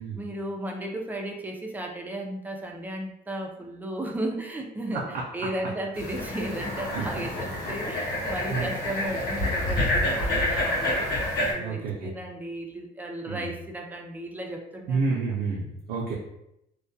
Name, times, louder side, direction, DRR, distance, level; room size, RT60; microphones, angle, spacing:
voice 1, 0.0-5.0 5.3-15.2, right 1 dB, 10° right, 1 dB, 0.4 m, -35 dB
sound 1, 5.9-11.5, left 1 dB, 70° left, 0.7 m, -28 dB
voice 2, 11.6-12.1 13.3-13.5 14.9-16.2, right 4 dB, 80° right, -4 dB, 0.5 m, -29 dB
2.2 x 2.1 x 2.6 m, 0.81 s
cardioid pair, 110°, 17 cm